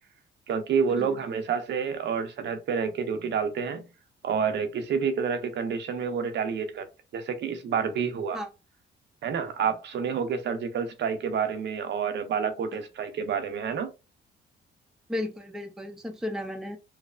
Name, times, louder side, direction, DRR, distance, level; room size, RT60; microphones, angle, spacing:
voice 1, 0.5-3.9 4.2-6.9 7.1-8.4 9.2-13.9, right 6 dB, 65° right, 0.6 m, -28 dB
voice 2, 15.1-16.8, left 1 dB, 5° right, 0.5 m, -34 dB
3.1 x 2.0 x 2.4 m
cardioid pair, 90°, 20 cm